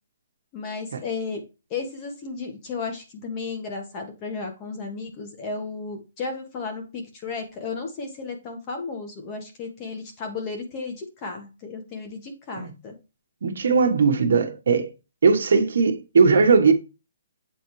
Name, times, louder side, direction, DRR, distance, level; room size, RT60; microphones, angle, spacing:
voice 1, 0.5-1.4 1.7-12.9, left 4 dB, 20° left, 1.4 m, -34 dB
voice 2, 13.4-14.9 15.2-16.7, right 5 dB, 65° right, 1.3 m, -19 dB
7.9 x 4.1 x 3.2 m
hypercardioid pair, 175°, 0 cm